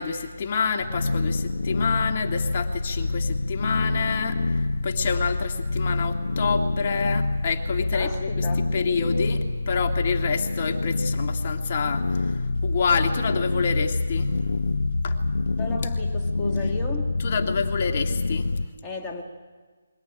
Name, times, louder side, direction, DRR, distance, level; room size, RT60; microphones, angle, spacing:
voice 1, 0.0-8.5 8.7-14.4 15.0-15.2 17.2-18.5, left 5 dB, 40° left, 4 dB, 1.9 m, -28 dB
sound 1, 0.8-18.7, left 2 dB, 85° left, 0.8 m, -26 dB
voice 2, 7.9-8.7 15.6-17.1 18.8-19.2, left 3 dB, 10° left, -2 dB, 1.6 m, -34 dB
23.5 x 16.5 x 9.9 m, 1.4 s
figure-of-eight pair, 160°, 0 cm